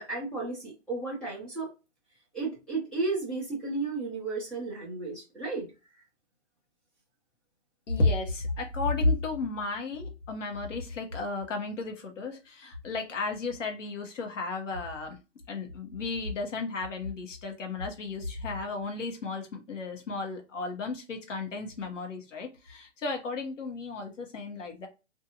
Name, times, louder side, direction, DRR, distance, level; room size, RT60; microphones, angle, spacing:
voice 1, 0.0-1.7 2.3-5.7, right 3 dB, ahead, 0.3 m, -33 dB
voice 2, 7.9-15.1 15.5-24.9, left 3 dB, 90° left, 1.1 m, -33 dB
2.6 x 2.5 x 2.8 m
hypercardioid pair, 145°, 36 cm